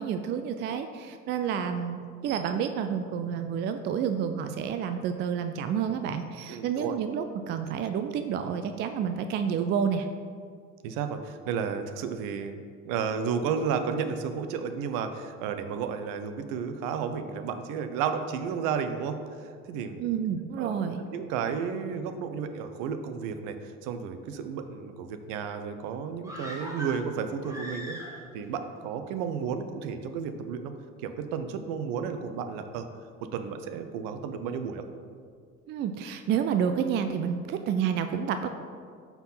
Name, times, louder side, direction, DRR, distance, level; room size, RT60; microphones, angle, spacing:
voice 1, 0.0-10.1 20.0-21.0 35.7-38.5, right 7 dB, 30° right, 8 dB, 0.3 m, -29 dB
voice 2, 6.5-6.9 10.8-12.6 12.8-20.0 20.6-20.8 21.1-28.0 28.3-30.7 31.0-32.9 33.2-34.8, right 6 dB, 55° right, 8 dB, 0.7 m, -32 dB
sound 1, 26.2-28.5 28.8-28.9, right 1 dB, 10° right, 1.4 m, -40 dB
5.6 x 4.7 x 5.6 m, 2.1 s
figure-of-eight pair, 65°, 39 cm